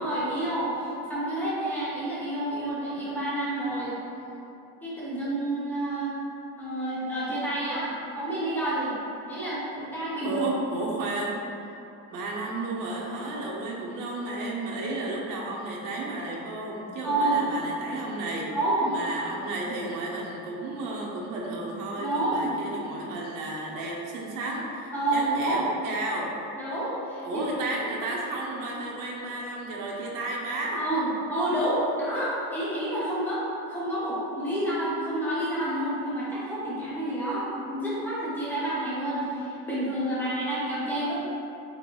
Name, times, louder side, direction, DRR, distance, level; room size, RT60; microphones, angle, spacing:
voice 1, 0.0-4.0 4.8-6.1 6.6-8.9 9.3-10.3 17.0-17.4 18.5-19.0 22.0-22.5 24.9-25.7 26.6-27.4 30.7-41.2, right 1 dB, 5° left, -9 dB, 0.8 m, -29 dB
voice 2, 10.2-11.7 12.1-18.5 18.9-26.3 27.2-30.8, right 2 dB, 80° right, -3 dB, 0.7 m, -32 dB
4.3 x 3.0 x 3.0 m, 2.8 s
cardioid pair, 175°, 33 cm